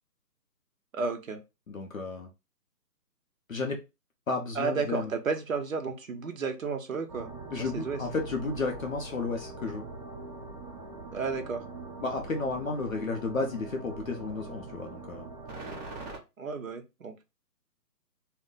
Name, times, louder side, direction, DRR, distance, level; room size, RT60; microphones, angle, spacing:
voice 1, 0.9-1.4 4.5-7.3 7.7-8.0 11.1-11.6 16.4-17.2, right 5 dB, 55° right, 5 dB, 0.6 m, -32 dB
voice 2, 1.7-2.3 3.5-3.8 4.3-5.1 7.5-9.8 12.0-15.3, left 3 dB, 55° left, 2 dB, 0.6 m, -32 dB
sound 1, 7.1-16.2, right 3 dB, 25° right, 0.9 m, -42 dB
2.3 x 2.1 x 3.7 m, 0.26 s
hypercardioid pair, 175°, 49 cm